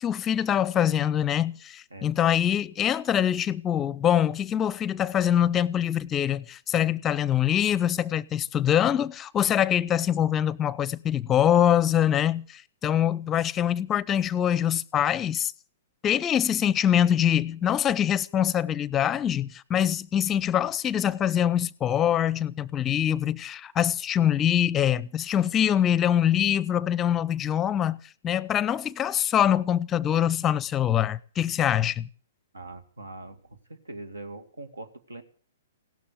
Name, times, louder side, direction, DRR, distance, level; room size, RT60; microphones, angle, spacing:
voice 1, 0.0-15.5 16.0-28.0 28.2-32.1, left 10 dB, 20° left, 0.7 m, -24 dB
voice 2, 1.9-2.4 32.5-35.2, right 2 dB, 75° right, 2.4 m, -42 dB
17.0 x 12.5 x 6.8 m
figure-of-eight pair, 115°, 0 cm